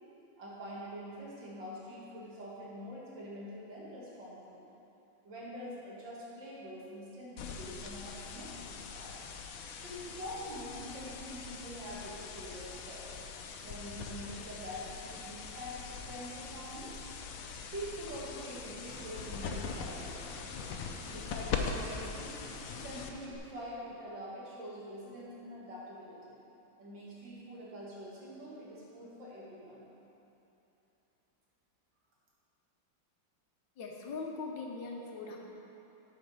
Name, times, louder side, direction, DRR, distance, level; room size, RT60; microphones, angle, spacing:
voice 1, 0.4-4.7 5.2-9.1 9.4-13.2 13.6-17.0 17.7-20.2 21.0-22.3 22.7-26.4 26.8-29.9, equal, 65° right, -6 dB, 2.4 m, -45 dB
sound 1, 7.4-23.4, left 5 dB, 85° left, 1.4 m, -42 dB
sound 2, 18.9-23.3, left 2 dB, 50° left, 1.3 m, -50 dB
voice 2, 33.8-35.4, left 3 dB, 70° left, -1 dB, 1.5 m, -40 dB
9.2 x 5.2 x 5.4 m, 2.9 s
omnidirectional pair, 2.2 m